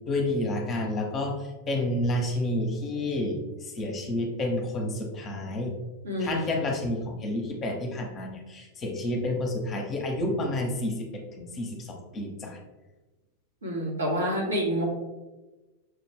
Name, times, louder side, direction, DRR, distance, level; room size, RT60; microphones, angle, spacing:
voice 1, 0.1-5.7 6.2-12.6, left 1 dB, 25° left, 2 dB, 0.8 m, -30 dB
voice 2, 6.0-6.7 13.6-14.8, equal, 70° right, -2 dB, 1.3 m, -28 dB
6.2 x 2.5 x 3.3 m, 1.1 s
figure-of-eight pair, 90°, 0 cm